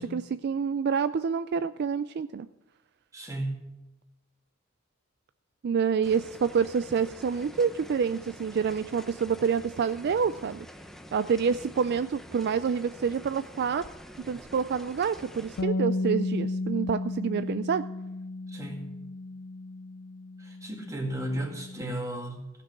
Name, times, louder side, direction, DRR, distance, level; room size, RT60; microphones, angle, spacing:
voice 1, 0.1-2.5 5.6-10.7 11.1-13.8 14.3-17.8, right 6 dB, 55° right, 13 dB, 0.3 m, -27 dB
voice 2, 3.1-3.6 14.3-14.4 18.5-18.9 20.4-22.5, right 1 dB, 15° right, 1 dB, 2.2 m, -34 dB
sound 1, 6.0-15.6, equal, ahead, 0.8 m, -47 dB
Bass guitar, 15.6-21.8, left 2 dB, 65° left, 0.4 m, -34 dB
15.5 x 6.0 x 8.1 m, 1.0 s
head